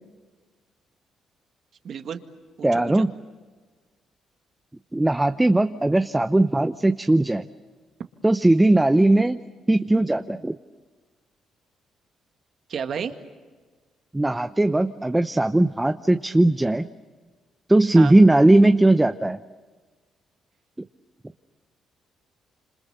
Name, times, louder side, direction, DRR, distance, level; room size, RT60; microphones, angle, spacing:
voice 1, 1.8-2.2 2.6-3.1 12.7-13.2 18.0-18.2, right 7 dB, 60° right, 7 dB, 1.9 m, -32 dB
voice 2, 2.6-3.1 4.9-7.4 8.2-9.4 9.7-10.6 14.1-16.8 17.7-19.4, right 2 dB, 10° right, 9 dB, 0.7 m, -18 dB
27.5 x 26.5 x 6.7 m, 1.4 s
cardioid pair, 90°, 0 cm